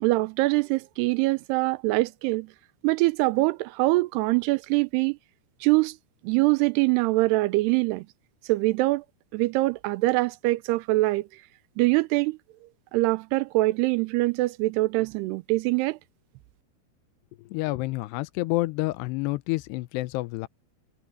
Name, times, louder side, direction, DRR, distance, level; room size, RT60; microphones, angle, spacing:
voice 1, 0.0-2.5 2.8-5.2 5.6-6.0 6.2-8.1 8.5-9.0 9.3-11.3 11.8-12.4 12.9-16.0, right 21 dB, 85° right, 2.6 m, -23 dB
voice 2, 17.4-20.5, left 20 dB, 90° left, 2.8 m, -29 dB
omnidirectional pair, 4.8 m